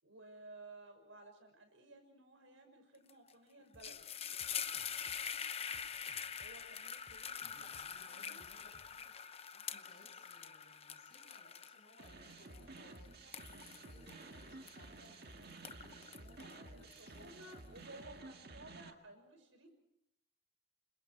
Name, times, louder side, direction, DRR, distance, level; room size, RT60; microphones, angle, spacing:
voice 1, 0.0-4.1 6.4-7.7 8.1-8.4 16.7-19.7, right 2 dB, 85° right, 5 dB, 5.9 m, -56 dB
sound 1, 3.1-3.3 3.6-15.1 15.5-17.4, left 7 dB, 30° left, 0.8 m, -45 dB
sound 2, 3.7-9.1, right 1 dB, 35° right, 3.1 m, -66 dB
voice 2, 7.5-9.1 9.5-13.3 13.7-17.6, left 1 dB, 55° left, 2 dB, 7.6 m, -64 dB
sound 3, 12.0-18.9, right 3 dB, 55° right, 1.9 m, -53 dB
28.5 x 26.0 x 4.7 m, 0.77 s
head